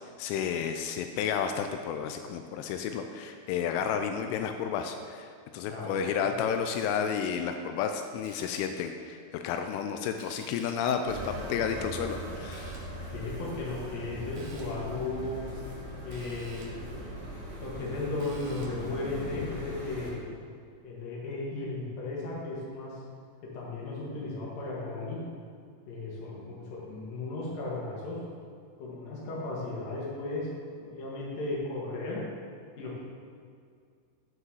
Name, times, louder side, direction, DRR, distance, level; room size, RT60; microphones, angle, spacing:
voice 1, 0.2-5.3 5.5-12.8, left 7 dB, 85° left, 6 dB, 3.1 m, -31 dB
voice 2, 5.7-6.3 13.1-15.4 16.0-17.3 17.6-20.2 20.8-22.9 23.4-25.2 25.9-28.2 28.8-30.5 30.8-32.2 32.8-33.0, left 2 dB, 55° left, -4 dB, 3.0 m, -35 dB
sound 1, 6.7-7.3 8.2-8.9 10.2-11.0 12.5-13.1 14.4-14.9 16.1-16.9 18.2-18.9, right 3 dB, 75° right, 2.7 m, -53 dB
sound 2, 11.1-20.1, equal, 40° right, 2.0 m, -40 dB
9.6 x 4.9 x 6.3 m, 2.2 s
omnidirectional pair, 5.6 m